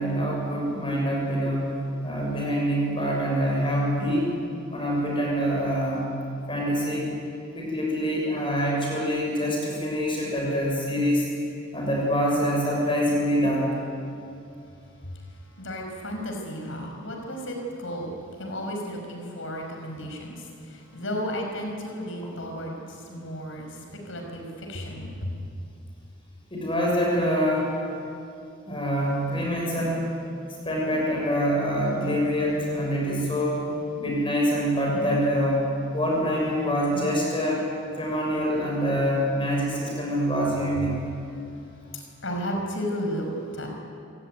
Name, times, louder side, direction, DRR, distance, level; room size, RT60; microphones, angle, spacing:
voice 1, 0.0-1.7 2.0-4.4 4.7-6.1 6.5-7.1 7.5-11.2 11.7-13.7 22.2-22.3 26.5-27.7 28.7-30.1 30.6-33.7 34.0-35.6 35.9-37.6 38.0-41.0, equal, 25° left, -2 dB, 6.7 m, -25 dB
voice 2, 15.6-18.1 18.4-20.4 20.7-25.3 41.9-43.3 43.5-43.7, equal, 65° left, 2 dB, 5.9 m, -33 dB
27.5 x 18.5 x 9.5 m, 2.6 s
head